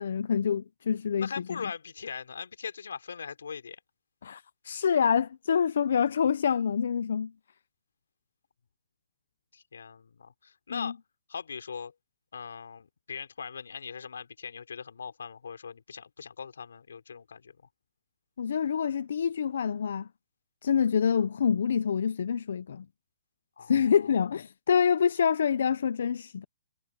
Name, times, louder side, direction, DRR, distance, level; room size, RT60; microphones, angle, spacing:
voice 1, 0.0-1.6 4.2-7.3 10.7-10.9 18.4-20.1 20.6-22.8 23.7-26.4, left 7 dB, 70° left, 0.7 m, -26 dB
voice 2, 1.2-3.8 9.5-11.0 11.3-11.9 12.3-17.6 23.6-24.2, left 6 dB, 85° left, 3.9 m, -40 dB
hypercardioid pair, 160°, 0 cm